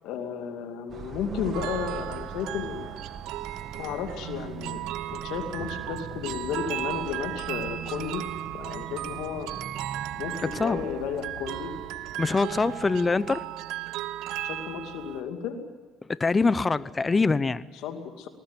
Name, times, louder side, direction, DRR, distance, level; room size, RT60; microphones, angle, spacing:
voice 1, 0.0-3.1 3.8-4.8 5.1-8.2 8.5-9.5 10.2-11.7 14.4-15.6 17.8-18.3, left 7 dB, 80° left, 6 dB, 2.5 m, -33 dB
sound 1, 0.9-13.4, right 7 dB, 55° right, 1.5 m, -43 dB
sound 2, 1.5-15.2, right 14 dB, 80° right, 0.9 m, -36 dB
voice 2, 12.2-13.4 16.1-17.6, left 4 dB, 25° left, 18 dB, 0.8 m, -24 dB
19.5 x 19.5 x 9.8 m, 1.4 s
supercardioid pair, 75°, 0 cm